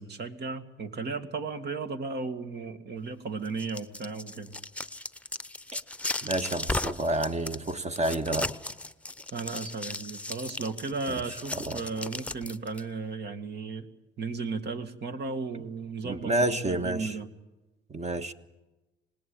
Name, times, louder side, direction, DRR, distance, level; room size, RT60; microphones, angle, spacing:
voice 1, 0.0-4.5 9.3-13.9 14.2-16.3 16.6-17.3, right 4 dB, 55° right, 2.2 m, -35 dB
sound 1, 3.5-12.8, left 2 dB, 5° left, 0.9 m, -36 dB
voice 2, 6.2-8.5 11.1-11.2 11.5-11.8 16.0-17.2 17.9-18.3, right 2 dB, 35° right, 1.6 m, -29 dB
26.0 x 19.5 x 8.7 m
cardioid pair, 90°, 20 cm